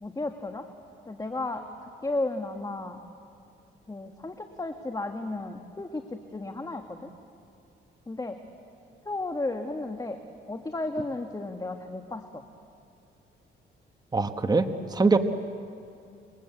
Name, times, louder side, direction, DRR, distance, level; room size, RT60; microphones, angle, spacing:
voice 1, 0.0-0.6 1.0-3.0 3.9-7.1 8.1-8.4 9.0-10.2 10.5-12.4, left 2 dB, 20° left, 5 dB, 1.7 m, -34 dB
voice 2, 14.1-15.2, right 3 dB, 20° right, 8 dB, 1.3 m, -23 dB
28.0 x 23.5 x 8.4 m, 2.5 s
cardioid pair, 90°, 20 cm